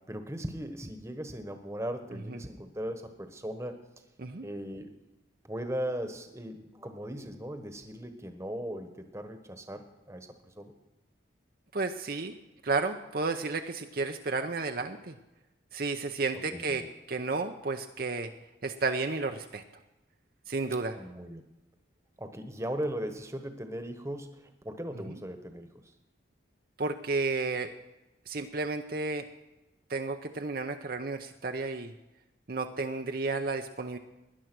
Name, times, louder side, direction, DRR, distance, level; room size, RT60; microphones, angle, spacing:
voice 1, 0.1-3.8 4.4-4.9 5.5-10.3 10.6-10.7 16.5-16.9 20.9-21.4 22.2-25.7, right 1 dB, 15° right, 7 dB, 1.2 m, -38 dB
voice 2, 11.7-12.4 12.6-15.2 15.7-18.3 18.6-19.6 20.5-21.0 25.1-25.2 26.8-27.7 28.3-29.3 29.9-31.9 32.5-34.0, right 3 dB, 50° right, 5 dB, 0.7 m, -32 dB
17.5 x 11.0 x 6.2 m, 1.0 s
head